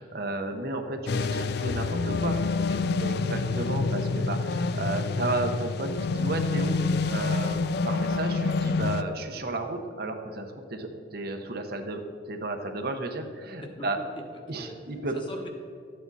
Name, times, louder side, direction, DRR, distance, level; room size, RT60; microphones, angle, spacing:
voice 1, 0.0-2.4 3.0-7.6 7.8-12.0 12.3-14.0 14.5-15.1, right 2 dB, 55° right, 5 dB, 0.9 m, -33 dB
sound 1, 1.1-9.0, left 4 dB, 60° left, 0.4 m, -27 dB
voice 2, 2.5-3.2 13.6-13.9 14.5-14.7 15.1-15.5, equal, 30° left, 2 dB, 1.3 m, -42 dB
13.0 x 8.6 x 4.1 m, 2.3 s
head